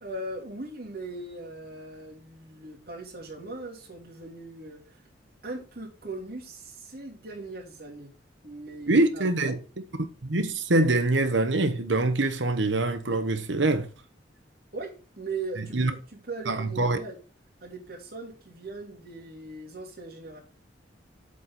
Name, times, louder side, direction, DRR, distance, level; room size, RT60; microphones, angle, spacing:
voice 1, 0.0-5.0 5.4-8.1 8.4-9.6 14.7-17.1 17.6-20.4, right 2 dB, 50° right, 2.7 m, -39 dB
voice 2, 8.9-9.6 10.2-13.9 15.6-15.9 16.5-17.0, right 2 dB, 75° right, 1.1 m, -24 dB
7.5 x 4.2 x 5.9 m
head